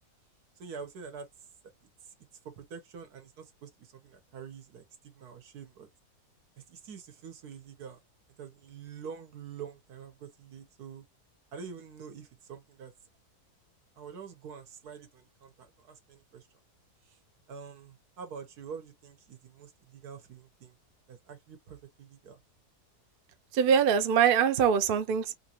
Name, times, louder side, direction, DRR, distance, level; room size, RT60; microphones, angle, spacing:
voice 1, 0.6-1.3 2.0-2.1 2.4-5.9 6.6-8.0 8.4-11.0 11.5-12.9 14.0-16.5 17.0-17.2 17.5-20.8 21.1-22.4, right 6 dB, 80° right, 1.5 m, -46 dB
voice 2, 23.5-25.3, right 7 dB, 55° right, 0.6 m, -23 dB
3.6 x 2.5 x 2.8 m
omnidirectional pair, 1.7 m